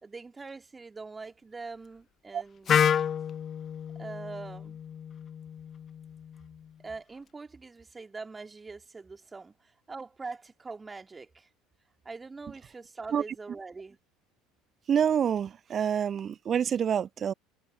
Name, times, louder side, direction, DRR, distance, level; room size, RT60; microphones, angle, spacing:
voice 1, 0.0-2.8 4.0-4.8 6.8-9.5 9.9-11.5 12.0-14.0, right 4 dB, 20° right, 2.4 m, -43 dB
Wind instrument woodwind instrument, 2.7-6.6, left 8 dB, 35° left, 0.4 m, -30 dB
voice 2, 14.9-17.3, right 8 dB, 35° right, 0.4 m, -27 dB
figure-of-eight pair, 65°, 0 cm